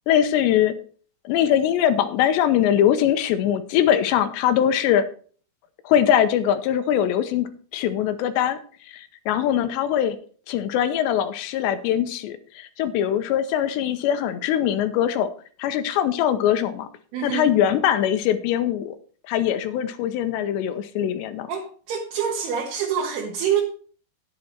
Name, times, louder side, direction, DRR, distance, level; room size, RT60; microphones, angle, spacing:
voice 1, 0.1-0.8 1.3-5.1 5.9-8.6 8.9-10.2 10.5-15.3 15.6-16.9 17.2-19.0 19.3-21.5, left 10 dB, 85° left, 11 dB, 3.1 m, -22 dB
voice 2, 17.1-17.5 21.5-23.6, right 8 dB, 75° right, -2 dB, 3.4 m, -26 dB
10.5 x 8.5 x 4.5 m, 0.43 s
omnidirectional pair, 4.9 m